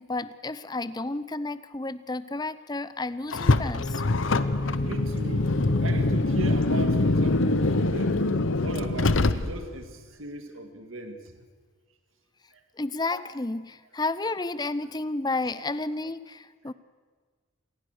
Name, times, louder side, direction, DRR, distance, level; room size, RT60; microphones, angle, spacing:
voice 1, 0.0-4.0 12.8-16.7, left 2 dB, 20° left, 15 dB, 0.6 m, -31 dB
Car, 3.3-9.8, left 2 dB, 80° left, 0.9 m, -24 dB
sound 1, 3.7-9.5, left 2 dB, 60° left, 2.5 m, -35 dB
voice 2, 4.7-5.5 5.8-8.3 8.6-11.2 12.5-12.6, right 2 dB, 90° right, 6 dB, 2.1 m, -38 dB
27.5 x 18.5 x 6.6 m, 1.5 s
head